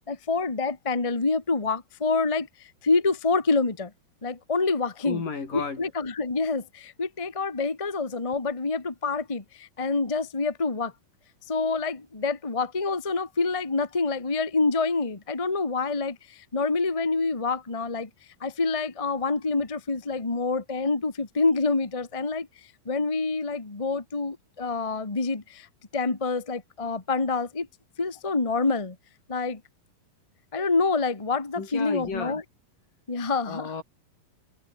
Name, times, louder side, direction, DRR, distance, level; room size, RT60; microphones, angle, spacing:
voice 1, 0.1-3.9 4.2-5.2 5.5-10.9 11.5-18.1 18.4-22.5 22.8-25.7 25.9-27.7 28.0-28.9 29.3-29.6 30.5-32.4 33.1-33.7, left 3 dB, 30° left, 0.6 m, -27 dB
voice 2, 5.0-5.8 31.6-32.4 33.4-33.8, left 5 dB, 65° left, 6.7 m, -33 dB
omnidirectional pair, 4.1 m